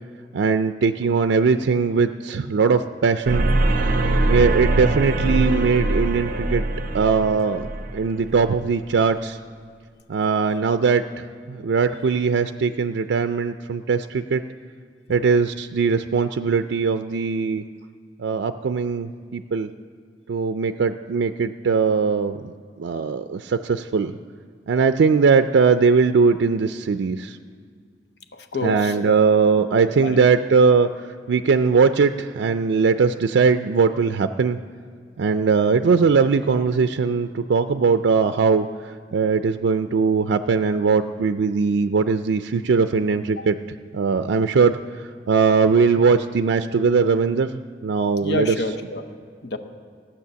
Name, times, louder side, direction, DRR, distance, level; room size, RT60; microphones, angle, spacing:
voice 1, 0.3-3.5 4.3-6.6 6.9-9.4 10.1-14.4 15.1-17.6 18.2-19.7 20.3-24.1 24.7-27.4 28.6-34.6 35.2-43.6 43.9-48.5, right 5 dB, 90° right, 9 dB, 0.4 m, -20 dB
sound 1, 3.2-8.5, right 2 dB, 50° right, 0.7 m, -22 dB
voice 2, 28.3-29.2 29.6-30.2 43.4-43.5 48.2-49.1 49.4-49.6, left 2 dB, 70° left, 6 dB, 0.9 m, -29 dB
15.0 x 8.5 x 6.9 m, 2.1 s
head